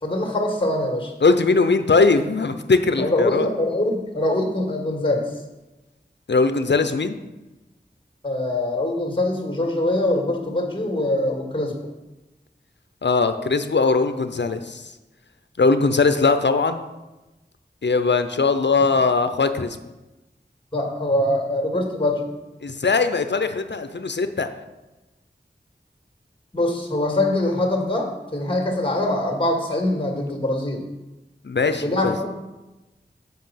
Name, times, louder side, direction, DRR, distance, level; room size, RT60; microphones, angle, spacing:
voice 1, 0.0-1.1 3.0-5.2 8.2-11.7 20.7-22.3 26.5-30.9 31.8-32.4, left 1 dB, 25° left, 1 dB, 2.0 m, -23 dB
voice 2, 1.2-3.5 6.3-7.2 13.0-14.8 15.6-16.8 17.8-19.8 22.6-24.5 31.4-32.1, left 4 dB, 70° left, 9 dB, 0.6 m, -20 dB
7.4 x 5.5 x 5.8 m, 1.0 s
wide cardioid pair, 45°, 19 cm